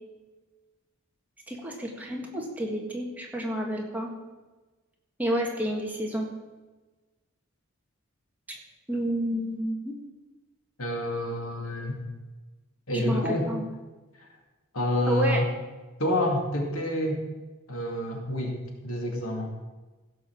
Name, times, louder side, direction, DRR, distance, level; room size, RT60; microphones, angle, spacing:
voice 1, 1.5-4.1 5.2-6.3 8.5-8.6 8.9-9.9 12.9-13.6 15.1-15.4, equal, 10° right, -1 dB, 1.8 m, -30 dB
voice 2, 10.8-12.0 12.9-13.5 14.7-15.5 16.0-17.2 17.7-18.6 18.8-19.5, left 1 dB, 85° left, 1 dB, 2.4 m, -28 dB
15.5 x 5.7 x 7.1 m, 1.2 s
head